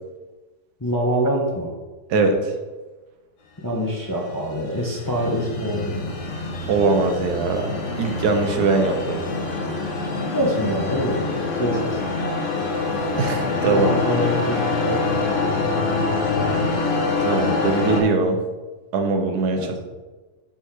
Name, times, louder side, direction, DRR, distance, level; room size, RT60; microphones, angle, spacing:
voice 1, 0.8-1.7 3.6-6.1 10.3-11.3 11.6-12.0 13.7-15.2 19.5-19.8, equal, 20° left, -2 dB, 0.6 m, -25 dB
voice 2, 2.1-2.5 6.7-9.2 13.2-13.9 17.2-18.4 18.9-19.8, right 3 dB, 85° right, 5 dB, 1.4 m, -21 dB
sound 1, 3.9-18.0, left 3 dB, 55° left, 1.2 m, -25 dB
7.0 x 4.2 x 4.7 m, 1.2 s
omnidirectional pair, 1.7 m